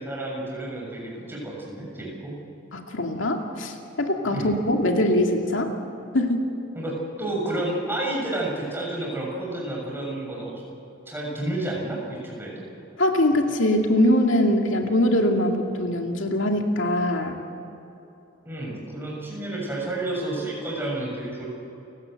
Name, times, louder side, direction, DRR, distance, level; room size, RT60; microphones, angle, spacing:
voice 1, 0.0-2.3 4.3-4.5 6.7-10.5 11.1-12.6 18.4-21.5, right 1 dB, 10° right, -2 dB, 6.7 m, -30 dB
voice 2, 2.7-5.7 6.1-6.5 13.0-17.4, left 1 dB, 80° left, 2 dB, 2.3 m, -22 dB
29.5 x 17.0 x 7.8 m, 2.9 s
head